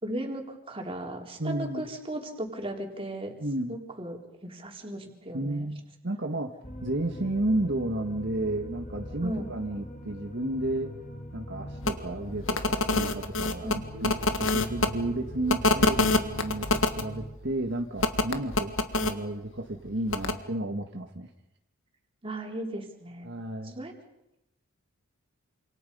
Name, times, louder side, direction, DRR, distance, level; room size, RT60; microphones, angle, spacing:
voice 1, 0.0-3.3 3.7-5.7 9.2-9.5 13.6-13.8 22.2-23.3 23.6-24.0, right 1 dB, 25° right, 2 dB, 4.0 m, -36 dB
voice 2, 1.4-1.9 3.4-3.8 5.3-6.5 6.8-10.9 11.3-21.3 23.2-23.7, right 1 dB, 55° right, 3 dB, 1.6 m, -32 dB
sound 1, 6.6-17.3, equal, 40° left, 4.3 m, -42 dB
sound 2, 11.8-11.9 12.4-14.9 15.5-17.0 18.0-19.1 20.1-20.3, left 2 dB, 65° left, 1.9 m, -25 dB
28.5 x 27.0 x 5.5 m, 0.86 s
head